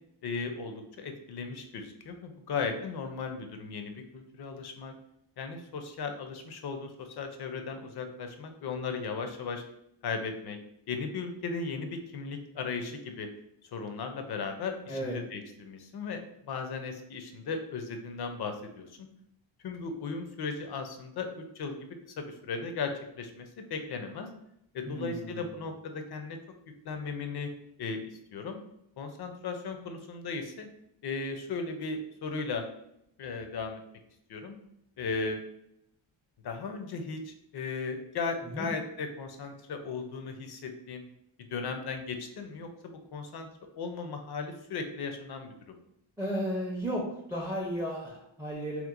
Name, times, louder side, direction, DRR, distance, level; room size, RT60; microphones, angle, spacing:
voice 1, 0.2-4.9 5.4-9.6 10.0-10.6 10.9-13.3 13.7-16.2 16.5-19.0 19.6-21.8 22.2-24.3 24.7-26.4 26.8-27.5 27.8-28.6 29.0-30.7 31.0-32.7 33.2-33.8 34.3-34.6 35.0-35.4 36.4-41.0 41.5-43.5 43.8-45.8, left 4 dB, 55° left, 6 dB, 0.5 m, -36 dB
voice 2, 24.9-25.5 38.4-38.7 46.2-48.9, equal, 5° right, -2 dB, 0.4 m, -34 dB
2.9 x 2.0 x 2.4 m, 0.77 s
cardioid pair, 95°, 48 cm